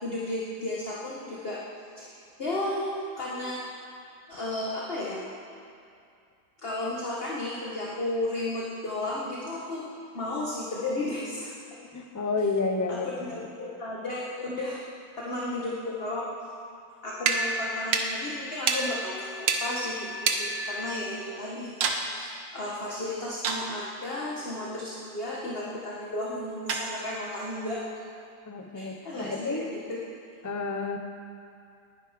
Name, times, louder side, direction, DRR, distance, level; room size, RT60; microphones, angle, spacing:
voice 1, 0.0-1.6 2.0-3.6 4.3-5.3 6.6-9.9 10.1-11.5 12.9-14.8 15.2-16.3 17.0-21.7 22.2-27.8 28.7-30.0, left 2 dB, 30° left, -5 dB, 1.9 m, -33 dB
voice 2, 11.9-13.1 28.5-29.7 30.4-31.0, left 3 dB, 15° left, 4 dB, 0.6 m, -30 dB
sound 1, 17.2-21.3 21.8-22.1 23.4-24.0 26.7-27.3, right 4 dB, 85° right, 1.9 m, -30 dB
20.0 x 12.0 x 5.3 m, 2.4 s
omnidirectional pair, 2.0 m